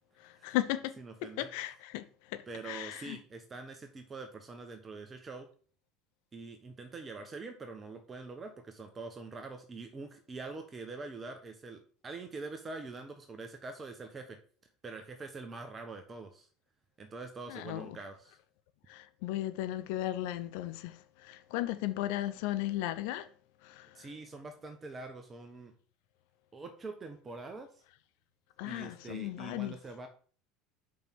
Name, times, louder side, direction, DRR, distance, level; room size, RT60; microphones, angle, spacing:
voice 1, 0.2-3.2 17.5-18.0 18.9-23.3 23.6-24.1 28.6-29.7, left 14 dB, 65° left, 0.8 m, -36 dB
voice 2, 1.0-1.5 2.5-5.5 6.3-14.4 14.8-16.5 17.0-18.4 23.9-25.7 26.5-27.8 28.6-30.1, right 3 dB, 25° right, 1.2 m, -44 dB
5.3 x 5.3 x 6.2 m
hypercardioid pair, 75°, 0 cm